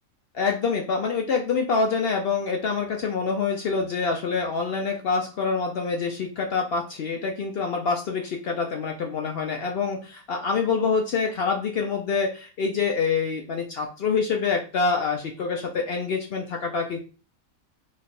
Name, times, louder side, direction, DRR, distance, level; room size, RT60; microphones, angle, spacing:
voice 1, 0.3-17.0, left 5 dB, 70° left, 2 dB, 0.6 m, -26 dB
3.2 x 2.4 x 4.1 m, 0.35 s
omnidirectional pair, 1.5 m